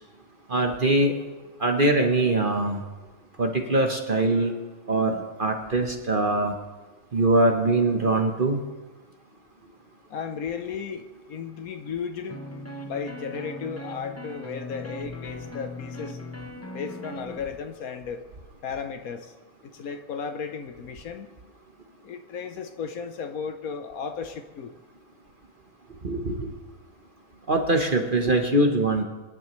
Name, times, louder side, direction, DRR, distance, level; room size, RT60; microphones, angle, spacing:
voice 1, 0.5-1.1 1.6-2.8 3.4-4.5 4.9-5.1 5.4-6.5 7.1-8.6 26.0-26.5 27.5-29.0, right 2 dB, 40° right, 4 dB, 1.0 m, -22 dB
voice 2, 10.1-12.4 12.8-16.2 16.7-18.2 18.6-19.4 19.6-21.3 22.0-24.7, left 6 dB, 65° left, 8 dB, 1.1 m, -35 dB
sound 1, 12.3-17.4, left 1 dB, 20° left, 0.4 m, -38 dB
25.5 x 10.5 x 3.1 m, 1.2 s
omnidirectional pair, 1.8 m